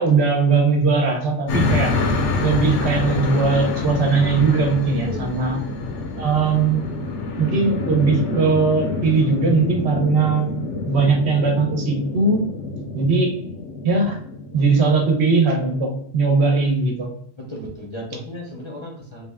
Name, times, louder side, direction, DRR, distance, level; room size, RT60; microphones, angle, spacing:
voice 1, 0.0-1.9 2.4-5.6 6.2-6.8 7.4-10.5 10.9-12.5 12.9-13.3 13.8-14.2 14.5-17.1, right 4 dB, 70° right, 2 dB, 1.0 m, -19 dB
sound 1, 1.5-15.7, left 3 dB, 80° left, 0.9 m, -27 dB
voice 2, 5.7-6.1 17.4-19.3, equal, 30° left, -3 dB, 0.6 m, -35 dB
3.3 x 2.2 x 3.4 m, 0.66 s
omnidirectional pair, 1.2 m